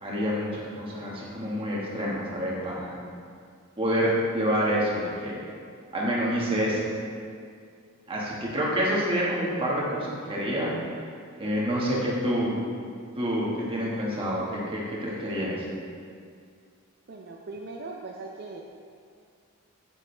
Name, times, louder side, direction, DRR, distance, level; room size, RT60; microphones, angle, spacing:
voice 1, 0.0-2.9 3.8-5.4 5.9-6.8 8.1-10.7 11.4-12.6 13.2-15.6, equal, 25° right, -5 dB, 1.5 m, -27 dB
voice 2, 17.1-18.6, right 3 dB, 50° right, 0 dB, 0.5 m, -39 dB
7.3 x 7.3 x 3.3 m, 2.2 s
head